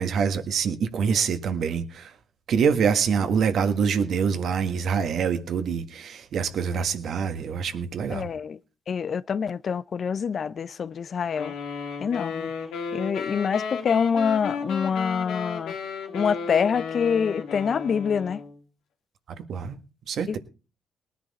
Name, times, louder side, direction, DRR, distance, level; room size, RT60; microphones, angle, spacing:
voice 1, 0.0-2.1 2.5-8.3 19.5-19.8 20.1-20.4, right 6 dB, 65° right, 1.6 m, -25 dB
voice 2, 8.1-8.6 8.9-11.5 12.0-12.5 12.9-15.7 16.1-18.4 20.3-20.4, left 6 dB, 50° left, 0.6 m, -26 dB
sound 1, 11.4-18.6, left 6 dB, 85° left, 2.7 m, -34 dB
19.0 x 10.0 x 4.2 m
cardioid pair, 90°, 0 cm